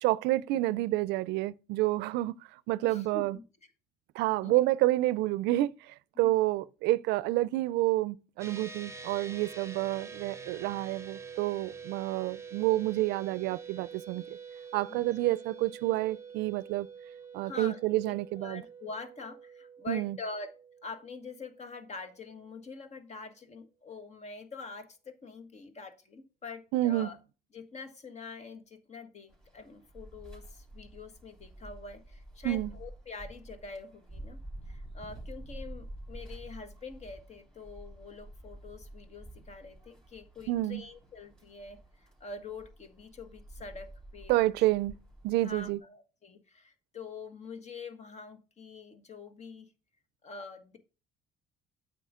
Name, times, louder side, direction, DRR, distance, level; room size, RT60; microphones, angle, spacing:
voice 1, 0.0-2.3 2.7-3.4 4.1-14.4 14.7-16.9 17.3-18.6 19.9-20.2 26.7-27.1 32.4-32.7 40.5-40.8 44.3-44.9 45.2-45.8, right 17 dB, 90° right, 0.4 m, -29 dB
voice 2, 2.8-3.4 4.4-4.6 6.1-6.4 14.9-15.0 17.4-20.5 20.8-27.2 27.5-34.4 34.7-44.3 44.6-44.7 45.4-49.7 50.2-50.8, left 4 dB, 40° left, 1.5 m, -45 dB
sound 1, 8.4-22.0, right 6 dB, 15° right, 0.9 m, -47 dB
sound 2, 29.3-45.8, right 1 dB, 5° left, 3.3 m, -49 dB
9.2 x 6.9 x 3.7 m
cardioid pair, 110°, 17 cm